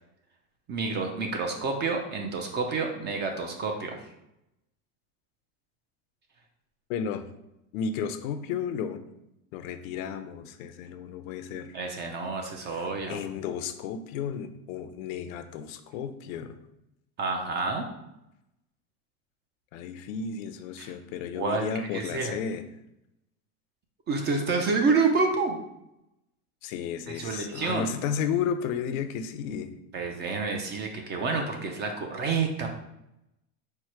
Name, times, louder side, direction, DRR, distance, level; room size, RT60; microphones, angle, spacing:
voice 1, 0.7-4.0 11.7-13.2 17.2-17.9 20.8-20.9 21.3-21.7 21.9-22.3 24.1-25.6 27.1-27.9 29.9-32.7, right 4 dB, 25° right, 3 dB, 0.4 m, -28 dB
voice 2, 6.9-7.3 7.7-9.0 9.5-11.8 12.7-16.6 19.7-22.6 26.6-29.7, left 7 dB, 70° left, 9 dB, 0.6 m, -33 dB
4.5 x 2.1 x 4.5 m, 0.85 s
supercardioid pair, 130°, 42 cm